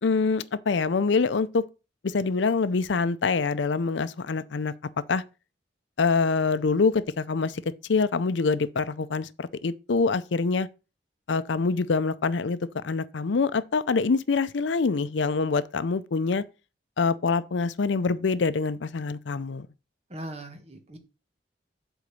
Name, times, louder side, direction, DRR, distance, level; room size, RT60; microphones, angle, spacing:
voice 1, 0.0-1.6 2.0-4.7 5.1-5.2 6.0-7.6 7.9-10.7 11.3-12.6 12.8-16.4 17.0-19.7, left 4 dB, 75° left, 0.5 m, -25 dB
voice 2, 20.1-21.0, right 1 dB, 35° right, 1.4 m, -39 dB
8.2 x 3.9 x 6.8 m
head